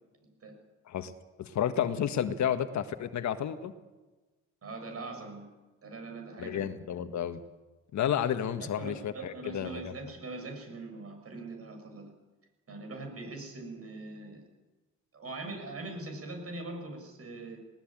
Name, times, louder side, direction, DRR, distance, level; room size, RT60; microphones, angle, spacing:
voice 1, 0.2-0.5 4.6-5.4 5.8-6.6 8.6-12.1 12.7-14.4 15.1-17.6, right 2 dB, 50° right, 4 dB, 7.0 m, -42 dB
voice 2, 1.4-3.7 6.4-7.4 7.9-10.0, left 9 dB, 65° left, 10 dB, 1.6 m, -31 dB
20.0 x 18.0 x 8.9 m, 1.2 s
cardioid pair, 90°, 30 cm